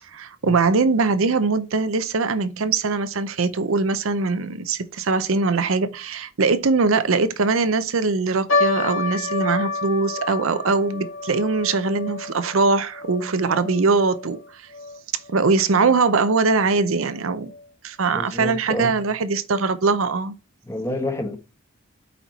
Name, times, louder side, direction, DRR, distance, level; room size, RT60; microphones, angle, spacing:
voice 1, 0.1-14.6 15.3-17.5 17.8-20.3, right 4 dB, 75° right, 0.7 m, -21 dB
sound 1, 8.5-15.0 15.2-15.3 16.1-16.4 17.0-17.1 17.4-17.6, left 3 dB, 65° left, 1.9 m, -29 dB
voice 2, 18.1-19.0 20.7-21.4, left 1 dB, 15° left, 1.2 m, -29 dB
8.2 x 4.5 x 4.0 m
head